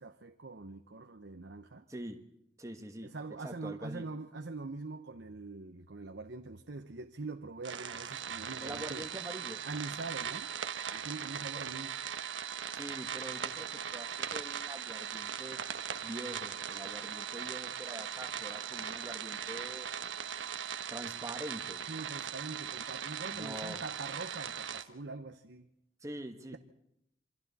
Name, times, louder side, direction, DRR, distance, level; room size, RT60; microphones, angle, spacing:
voice 1, 0.0-1.9 3.0-9.1 9.6-10.5 10.9-12.0 21.9-25.7, right 3 dB, 70° right, 0.9 m, -43 dB
voice 2, 1.9-2.2 2.6-3.1 3.4-4.1 8.6-9.6 12.7-15.6 16.0-19.9 20.9-21.8 23.3-23.8 26.0-26.6, right 1 dB, 15° right, 1.4 m, -44 dB
sound 1, 7.6-24.8, right 8 dB, 85° right, 1.2 m, -39 dB
27.5 x 25.0 x 4.2 m
head